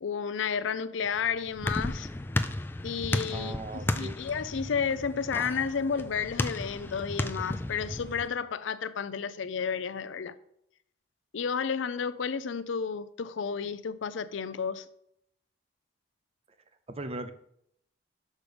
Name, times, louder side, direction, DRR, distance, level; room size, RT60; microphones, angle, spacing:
voice 1, 0.0-2.1 2.8-10.3 11.3-14.8, left 6 dB, 85° left, 0.5 m, -32 dB
sound 1, 1.0-8.3, left 1 dB, 10° left, 0.3 m, -34 dB
voice 2, 3.3-4.2 16.9-17.3, right 2 dB, 30° right, 0.6 m, -38 dB
6.3 x 5.2 x 5.0 m
head